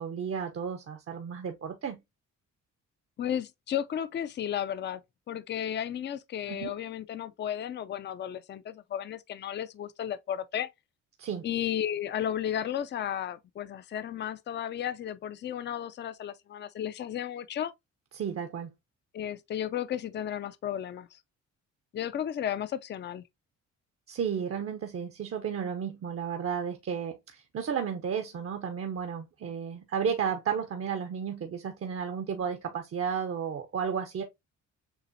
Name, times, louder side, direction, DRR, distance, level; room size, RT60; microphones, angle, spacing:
voice 1, 0.0-2.0 6.5-6.7 11.2-11.5 18.1-18.7 24.1-34.2, right 7 dB, 50° right, 0.7 m, -33 dB
voice 2, 3.2-5.0 5.3-10.7 11.4-17.7 19.1-21.2 21.9-23.2, left 10 dB, 35° left, 0.4 m, -34 dB
6.9 x 2.4 x 2.6 m
cardioid pair, 90°, 30 cm